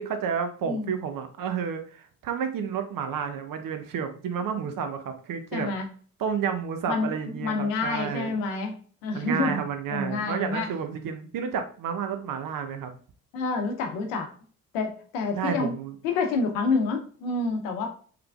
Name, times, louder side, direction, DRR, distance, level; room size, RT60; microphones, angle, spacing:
voice 1, 0.0-5.7 6.2-8.3 9.1-12.9 15.4-15.9, right 7 dB, 60° right, 7 dB, 0.7 m, -31 dB
voice 2, 0.6-0.9 5.5-5.8 6.9-8.8 9.0-9.6 9.9-10.7 13.3-14.3 14.7-15.7 16.0-17.9, left 3 dB, 90° left, 5 dB, 0.7 m, -28 dB
3.3 x 3.3 x 2.3 m, 0.43 s
hypercardioid pair, 50°, 37 cm